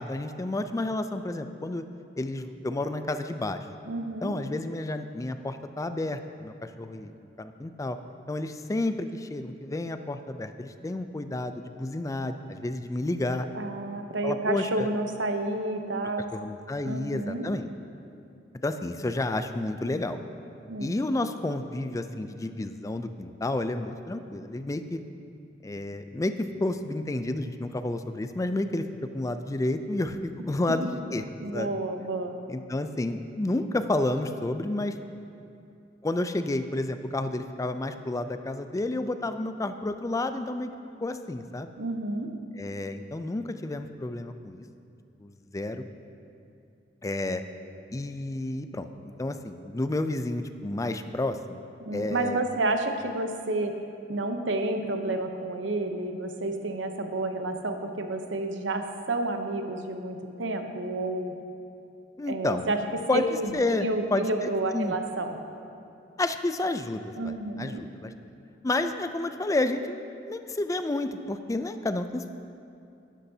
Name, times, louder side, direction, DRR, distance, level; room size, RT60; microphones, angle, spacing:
voice 1, 0.0-1.8 2.2-3.6 4.2-7.1 7.4-8.0 8.3-13.5 14.2-14.9 16.3-17.7 18.6-20.2 20.8-25.0 25.6-28.8 29.1-31.2 31.5-31.7 32.5-34.9 36.0-40.7 41.0-41.7 42.6-44.7 45.2-45.8 47.0-47.4 47.9-51.6 51.9-52.4 62.2-62.7 63.1-63.3 63.5-64.9 66.2-68.1 68.6-72.3, left 2 dB, 20° left, 9 dB, 0.4 m, -30 dB
voice 2, 3.9-4.3 13.5-16.3 16.8-17.5 20.7-20.9 31.4-32.4 41.8-42.3 51.9-53.7 54.1-61.3 62.3-62.8 63.1-65.4 67.2-67.8, right 2 dB, 90° right, 5 dB, 0.8 m, -30 dB
12.0 x 10.0 x 2.8 m, 2.6 s
head